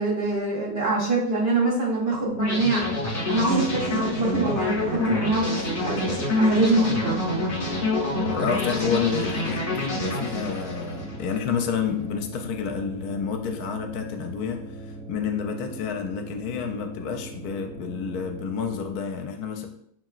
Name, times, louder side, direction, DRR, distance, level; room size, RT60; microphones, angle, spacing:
voice 1, 0.0-2.9 3.3-7.2, right 2 dB, 55° right, -3 dB, 0.8 m, -24 dB
sound 1, 2.3-19.0, right 1 dB, 80° right, 2.4 m, -40 dB
sound 2, 2.4-11.4, left 2 dB, 35° left, 0.6 m, -27 dB
voice 2, 8.2-19.7, left 6 dB, 75° left, 5 dB, 1.0 m, -29 dB
5.7 x 2.8 x 2.4 m, 0.71 s
omnidirectional pair, 1.7 m